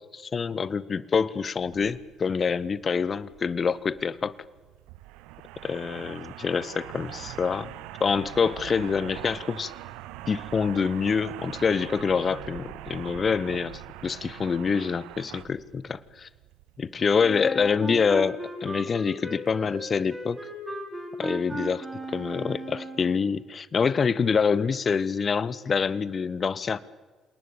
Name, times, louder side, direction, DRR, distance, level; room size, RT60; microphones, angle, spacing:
voice 1, 0.1-4.3 5.6-7.7 8.0-9.7 10.3-16.3 16.8-20.4 21.2-26.8, left 5 dB, 40° left, 19 dB, 1.1 m, -26 dB
sound 1, 1.6-18.2, right 16 dB, 70° right, 0.9 m, -43 dB
Wind instrument woodwind instrument, 17.2-23.2, right 2 dB, 20° right, 6.6 m, -37 dB
27.5 x 19.0 x 8.9 m, 1.3 s
figure-of-eight pair, 50°, 0 cm